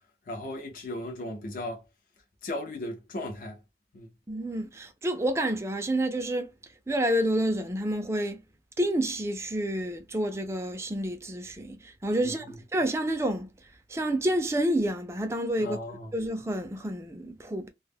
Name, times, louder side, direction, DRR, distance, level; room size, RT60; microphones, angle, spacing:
voice 1, 0.3-1.8 2.4-3.6 3.9-4.1 12.2-12.4 15.6-16.1, left 1 dB, 50° left, 0.5 m, -36 dB
voice 2, 4.3-6.5 6.9-8.4 8.8-13.5 13.9-17.7, right 1 dB, 15° right, 0.4 m, -29 dB
2.1 x 2.0 x 3.3 m
head